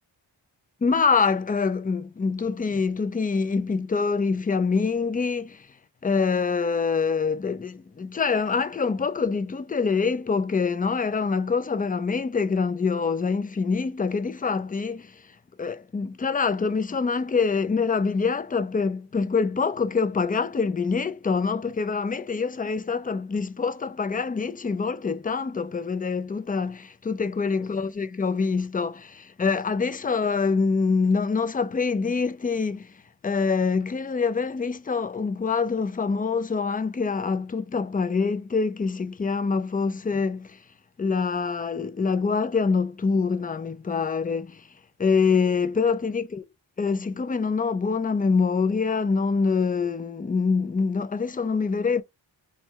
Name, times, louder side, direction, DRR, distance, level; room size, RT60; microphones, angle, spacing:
voice 1, 0.8-5.7 6.0-15.2 15.6-32.9 33.2-40.6 41.0-44.6 45.0-46.5 46.8-52.0, left 5 dB, 20° left, 0.3 m, -25 dB
4.3 x 2.3 x 4.5 m
wide cardioid pair, 95°, 45 cm